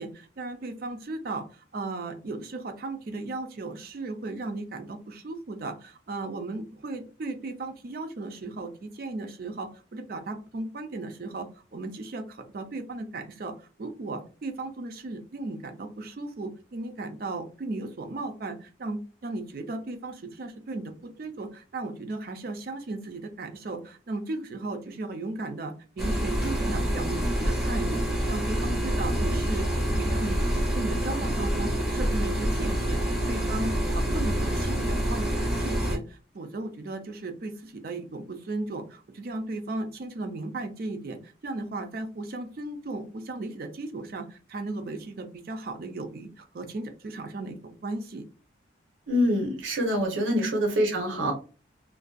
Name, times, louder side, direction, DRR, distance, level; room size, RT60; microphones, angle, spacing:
voice 1, 0.0-30.4 30.7-33.0 33.3-48.2 50.3-50.6, right 2 dB, 50° right, 6 dB, 0.4 m, -36 dB
sound 1, 26.0-36.0, equal, ahead, 0.6 m, -27 dB
voice 2, 49.1-51.3, equal, 85° right, 0 dB, 0.8 m, -25 dB
2.5 x 2.2 x 2.3 m, 0.36 s
head